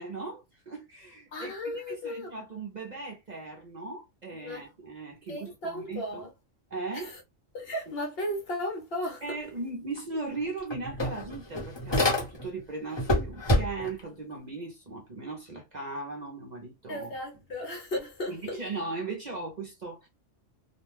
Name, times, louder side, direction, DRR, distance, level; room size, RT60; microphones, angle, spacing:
voice 1, 0.0-6.3 6.7-7.1 9.2-17.1 18.3-20.1, right 3 dB, 45° right, 0.6 m, -38 dB
voice 2, 1.3-2.3 4.4-4.7 5.3-6.3 6.9-7.2 7.5-9.4 16.9-18.6, left 1 dB, 55° left, 0.8 m, -35 dB
sound 1, 10.0-10.1 10.4-12.6 12.9-14.0, left 1 dB, 25° left, 0.8 m, -27 dB
2.4 x 2.1 x 3.2 m
omnidirectional pair, 1.3 m